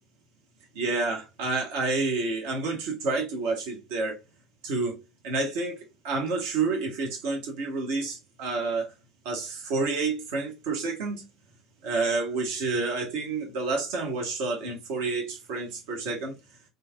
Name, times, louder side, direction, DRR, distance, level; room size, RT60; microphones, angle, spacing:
voice 1, 0.7-4.2 4.6-5.8 6.0-8.9 9.2-11.3 11.8-16.4, right 3 dB, 60° right, 1.0 m, -29 dB
3.3 x 2.4 x 2.7 m
figure-of-eight pair, 65°, 0 cm